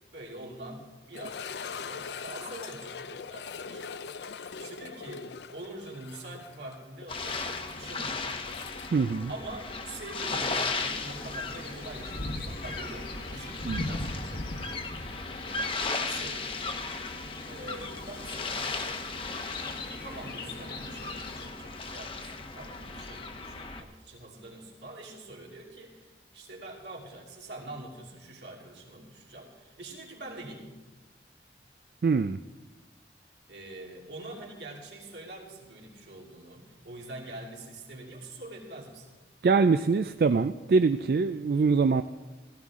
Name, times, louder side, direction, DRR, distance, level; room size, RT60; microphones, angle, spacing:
voice 1, 0.1-3.8 4.6-8.3 9.3-14.9 15.9-16.5 17.5-19.1 20.0-30.7 33.5-39.1, right 2 dB, 80° right, -2 dB, 2.9 m, -44 dB
sound 1, 1.1-10.1 10.3-10.4 11.0-11.1 13.7-13.8, left 5 dB, 75° left, 0.5 m, -42 dB
sound 2, 7.1-23.8, left 3 dB, 30° left, 0.9 m, -36 dB
voice 2, 8.9-9.3 13.7-13.9 32.0-32.4 39.4-42.0, right 4 dB, 55° right, 10 dB, 0.3 m, -24 dB
sound 3, 10.8-21.5, left 2 dB, 60° left, 1.3 m, -40 dB
16.5 x 14.0 x 3.7 m, 1.2 s
head